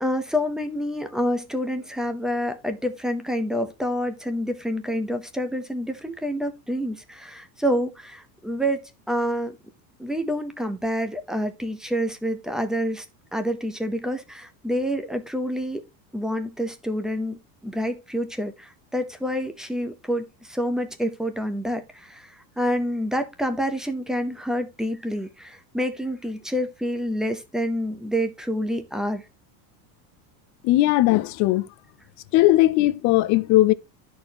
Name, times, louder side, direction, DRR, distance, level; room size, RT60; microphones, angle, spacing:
voice 1, 0.0-9.6 10.0-13.1 13.3-15.8 16.1-29.2, equal, ahead, 0.7 m, -28 dB
voice 2, 30.6-31.7 32.3-33.7, left 16 dB, 40° left, 0.5 m, -18 dB
12.5 x 4.4 x 2.9 m
supercardioid pair, 145°, 48 cm